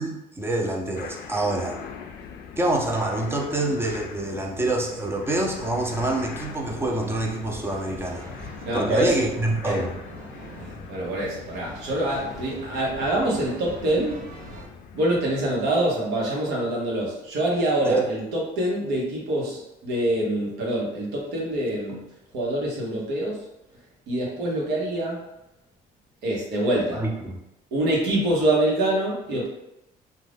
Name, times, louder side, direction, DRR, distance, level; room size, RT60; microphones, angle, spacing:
voice 1, 0.0-1.8 2.6-8.3 8.7-10.0 17.9-18.1 26.9-27.4, right 2 dB, 15° right, 1 dB, 0.5 m, -26 dB
sound 1, 1.0-15.8, left 7 dB, 70° left, 0.4 m, -42 dB
sound 2, 5.3-14.7, right 2 dB, 55° right, 0.6 m, -43 dB
voice 2, 8.6-9.2 9.6-9.7 10.6-14.2 14.9-22.0 22.3-23.4 24.1-25.2 26.2-27.0 27.7-29.5, right 1 dB, 90° right, -3 dB, 1.0 m, -25 dB
2.5 x 2.3 x 3.4 m, 0.90 s
cardioid pair, 110°, 17 cm